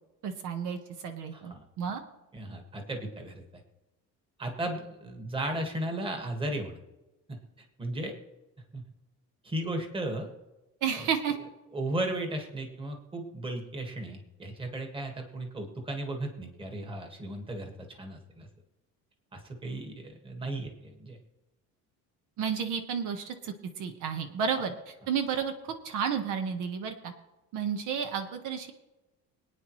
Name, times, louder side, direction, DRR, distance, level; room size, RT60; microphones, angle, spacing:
voice 1, 0.2-2.0 10.8-11.4 22.4-27.1 27.5-28.7, right 7 dB, 65° right, 6 dB, 1.4 m, -32 dB
voice 2, 1.3-1.6 2.3-3.4 4.4-6.8 7.3-7.4 7.8-8.1 8.7-8.8 9.4-10.3 11.7-18.5 19.3-21.2, right 1 dB, 15° right, 3 dB, 1.8 m, -35 dB
25.5 x 9.3 x 3.2 m, 1.0 s
cardioid pair, 170°, 33 cm